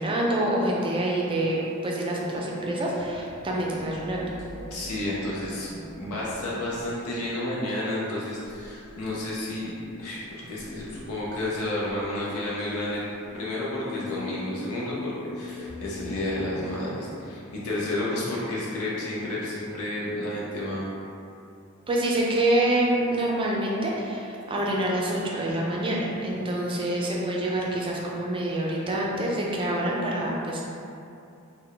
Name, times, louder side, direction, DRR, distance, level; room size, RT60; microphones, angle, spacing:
voice 1, 0.0-4.3 21.9-30.6, right 1 dB, 25° right, -3 dB, 0.4 m, -26 dB
sound 1, 2.9-16.3, left 3 dB, 70° left, 1.2 m, -44 dB
voice 2, 4.7-5.7 6.0-9.7 10.0-13.0 13.3-20.8, left 1 dB, 90° left, -6 dB, 0.6 m, -31 dB
3.3 x 2.2 x 3.7 m, 2.7 s
head